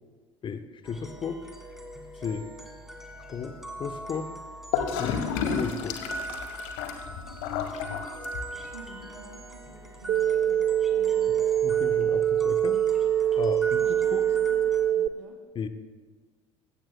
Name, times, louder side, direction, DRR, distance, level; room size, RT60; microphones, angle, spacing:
voice 1, 0.4-1.4 2.2-2.5 3.3-4.3 5.0-6.0 11.6-12.9 13.3-14.2 15.5-15.7, left 6 dB, 30° left, 10 dB, 0.9 m, -35 dB
sound 1, 0.8-14.9, right 1 dB, ahead, 1.9 m, -41 dB
Gurgling / Toilet flush, 4.7-8.7, left 7 dB, 55° left, 1.3 m, -31 dB
voice 2, 8.5-10.6 10.9-11.4 13.8-14.6 14.9-15.4, right 3 dB, 75° right, 4 dB, 1.8 m, -50 dB
sound 2, 10.1-15.1, right 10 dB, 40° right, 0.5 m, -24 dB
19.5 x 16.5 x 2.2 m, 1.4 s
figure-of-eight pair, 60°, 16 cm